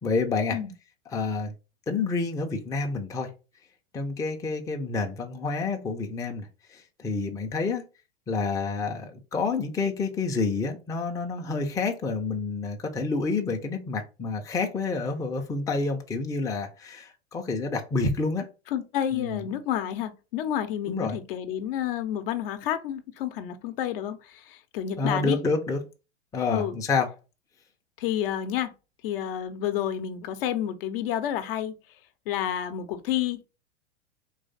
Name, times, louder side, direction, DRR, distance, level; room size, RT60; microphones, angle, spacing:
voice 1, 0.0-0.6 1.1-1.5 1.9-3.3 3.9-7.8 8.3-18.5 19.1-19.4 20.9-21.2 25.0-25.8 26.3-27.1, left 4 dB, 10° left, 0.6 m, -28 dB
voice 2, 18.7-25.4 26.5-26.8 28.0-28.7 29.0-31.8 32.3-33.5, left 10 dB, 50° left, 0.8 m, -30 dB
4.0 x 3.1 x 4.0 m
figure-of-eight pair, 100°, 36 cm